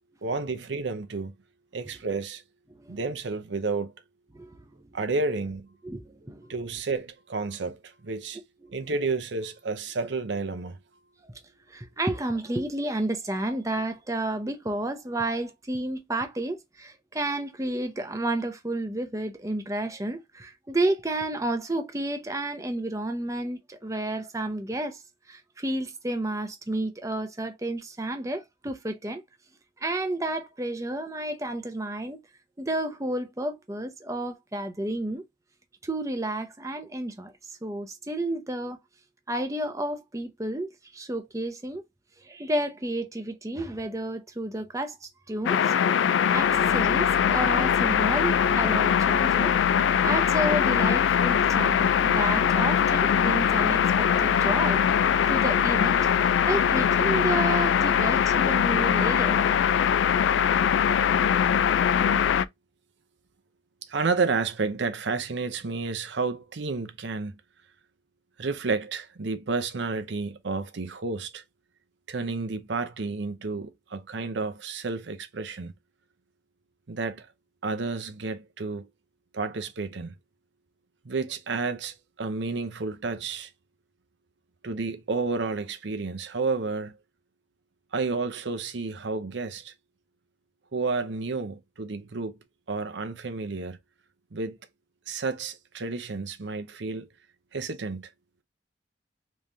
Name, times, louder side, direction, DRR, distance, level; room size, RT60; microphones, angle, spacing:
voice 1, 0.2-1.3 1.7-2.4 2.9-3.9 4.9-5.7 6.5-8.4 8.7-10.8 63.9-67.4 68.4-71.4 72.1-75.7 76.9-77.3 77.6-78.9 79.3-80.1 81.0-83.5 84.6-87.0 87.9-89.7 90.7-92.4 92.7-93.8 94.3-94.6 95.1-97.1 97.5-98.1, right 4 dB, 80° right, 0.7 m, -31 dB
voice 2, 4.3-4.9 5.8-6.5 8.6-8.8 11.2-11.4 11.7-25.0 25.3-29.2 29.8-32.2 32.6-35.2 35.8-38.8 39.3-41.8 42.2-45.7 46.3-56.1 56.5-59.6, right 1 dB, 15° right, 0.7 m, -31 dB
sound 1, 45.5-62.5, left 8 dB, 85° left, 0.3 m, -22 dB
3.5 x 3.1 x 2.6 m
head